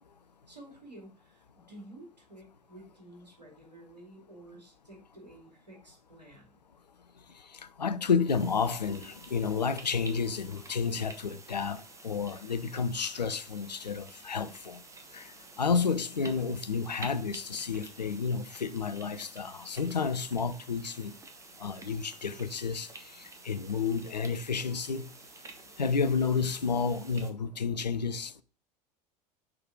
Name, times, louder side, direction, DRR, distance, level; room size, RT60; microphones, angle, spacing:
voice 1, 0.5-6.6, right 1 dB, 80° right, 2.5 m, -51 dB
voice 2, 7.8-14.8 15.1-21.1 21.6-22.9 23.2-25.1 25.8-28.4, left 5 dB, 85° left, 0.5 m, -31 dB
sound 1, 8.3-27.3, right 3 dB, 15° right, 1.1 m, -50 dB
6.0 x 4.7 x 3.7 m
figure-of-eight pair, 80°, 21 cm